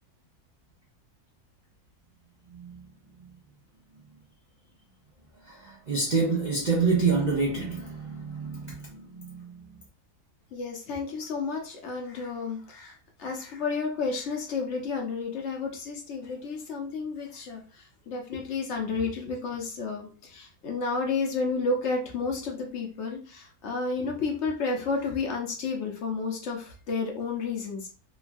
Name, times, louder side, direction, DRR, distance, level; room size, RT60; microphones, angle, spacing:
voice 1, 2.5-3.4 5.4-9.8, right 4 dB, 85° right, 0.4 m, -28 dB
voice 2, 10.5-27.9, left 4 dB, 60° left, 0.8 m, -31 dB
3.0 x 2.2 x 2.5 m
omnidirectional pair, 1.6 m